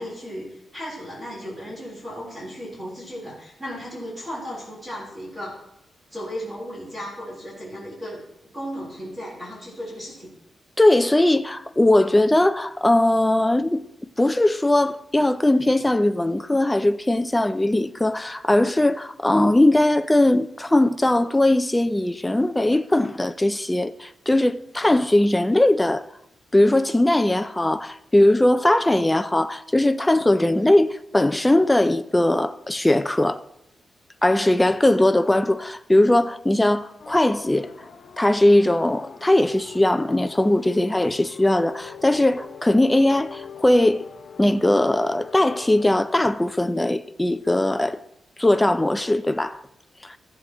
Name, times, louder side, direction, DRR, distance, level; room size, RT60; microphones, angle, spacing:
voice 1, 0.0-5.6 6.1-8.2 8.5-10.3, equal, 15° right, 3.8 m, -35 dB
voice 2, 10.8-13.8 14.2-26.1 26.5-33.4 34.2-37.7 38.2-44.0 44.4-48.0 48.4-49.6 50.0-50.2, left 1 dB, 10° left, 0.4 m, -19 dB
sound 1, 37.0-45.8, left 6 dB, 55° left, 0.7 m, -43 dB
15.0 x 7.7 x 3.0 m
wide cardioid pair, 170°, 0 cm